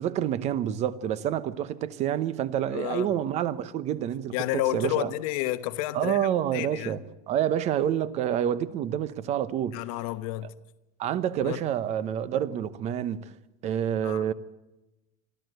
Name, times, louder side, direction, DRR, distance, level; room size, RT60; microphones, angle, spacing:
voice 1, 0.0-5.1 5.9-9.8 11.0-13.3 13.6-14.3, right 10 dB, 35° right, 0.9 m, -28 dB
voice 2, 2.7-3.1 4.3-7.0 9.7-10.5 11.4-11.6 14.0-14.3, left 15 dB, 65° left, 1.1 m, -31 dB
23.5 x 14.0 x 7.9 m
supercardioid pair, 155°, 20 cm